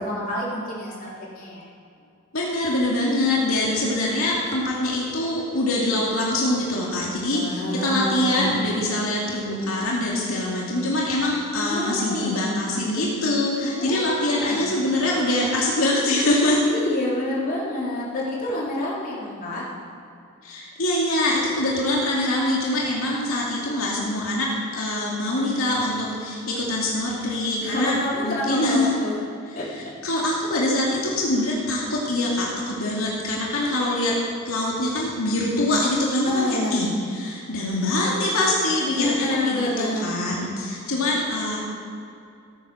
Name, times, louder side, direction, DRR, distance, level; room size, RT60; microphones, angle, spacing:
voice 1, 0.0-1.6 7.3-8.7 11.5-12.6 13.6-14.6 16.6-19.6 27.6-29.2 29.5-30.2 36.2-36.8 39.0-40.1, left 1 dB, 45° left, -6 dB, 3.9 m, -28 dB
voice 2, 2.3-16.6 20.4-24.5 24.7-28.0 28.2-29.0 29.5-34.1 34.5-41.6, left 1 dB, 80° left, -4 dB, 2.6 m, -24 dB
16.5 x 9.5 x 6.2 m, 2.5 s
head